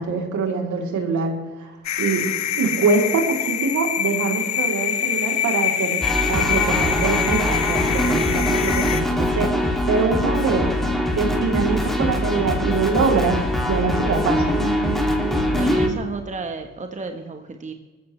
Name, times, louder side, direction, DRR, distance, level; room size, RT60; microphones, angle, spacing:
voice 1, 0.0-1.3 1.6-1.7 2.0-10.7 11.1-13.4 13.7-14.5, right 4 dB, 70° right, 1 dB, 3.3 m, -24 dB
sound 1, 1.8-9.0, left 9 dB, 65° left, 1.1 m, -25 dB
sound 2, 6.0-15.9, left 1 dB, ahead, 2.4 m, -22 dB
voice 2, 15.5-17.7, right 4 dB, 25° right, 6 dB, 1.2 m, -32 dB
20.0 x 14.5 x 3.3 m, 1.3 s
cardioid pair, 90°, 30 cm